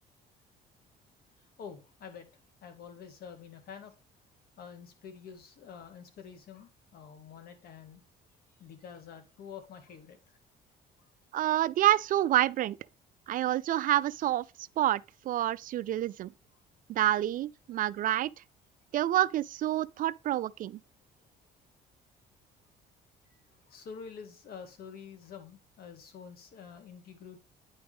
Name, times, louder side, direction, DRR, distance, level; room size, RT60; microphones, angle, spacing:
voice 1, 1.4-3.9 4.6-8.0 8.6-10.4 11.0-11.1 23.3-27.4, left 7 dB, 65° left, 2.1 m, -48 dB
voice 2, 11.3-12.8 13.3-16.3 16.9-18.3 18.9-20.8, right 13 dB, 55° right, 0.4 m, -28 dB
9.5 x 4.7 x 3.5 m
cardioid pair, 110°, 17 cm